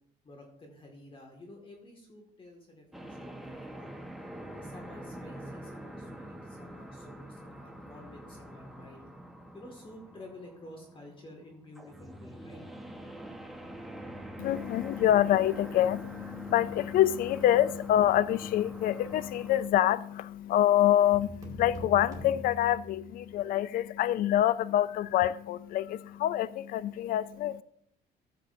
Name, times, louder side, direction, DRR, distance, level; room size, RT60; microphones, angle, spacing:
voice 1, 0.2-4.0 4.5-9.1 9.5-12.6, left 1 dB, 30° left, 2.0 m, -51 dB
sound 1, 2.9-19.7, right 1 dB, ahead, 1.1 m, -45 dB
voice 2, 14.4-27.6, left 12 dB, 60° left, 0.4 m, -26 dB
sound 2, 21.1-23.4, equal, 20° right, 2.5 m, -43 dB
14.0 x 7.7 x 2.7 m
cardioid pair, 110°, 17 cm